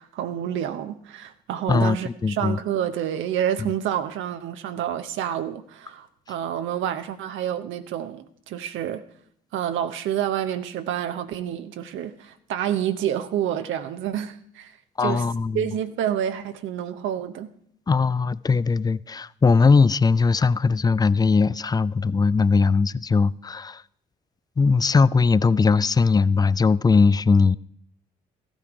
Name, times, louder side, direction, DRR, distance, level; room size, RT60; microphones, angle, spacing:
voice 1, 0.0-9.0 9.5-15.2 15.5-17.5, right 10 dB, 65° right, 0.8 m, -28 dB
voice 2, 1.7-2.6 3.6-3.7 15.0-15.7 17.9-23.8 24.6-27.6, left 4 dB, 20° left, 0.4 m, -20 dB
15.0 x 9.1 x 4.8 m
hypercardioid pair, 45°, 21 cm